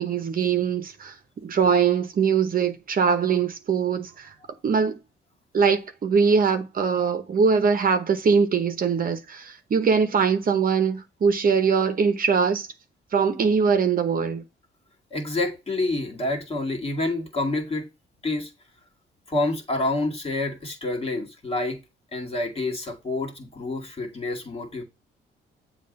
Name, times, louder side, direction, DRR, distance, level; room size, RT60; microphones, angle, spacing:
voice 1, 0.0-4.3 4.6-5.0 5.5-12.7 13.1-14.4, right 6 dB, 45° right, 0.9 m, -22 dB
voice 2, 15.1-17.9 18.2-18.5 19.3-21.8 22.1-24.8, left 2 dB, 30° left, 2.1 m, -28 dB
7.5 x 2.5 x 5.3 m
cardioid pair, 90°, 20 cm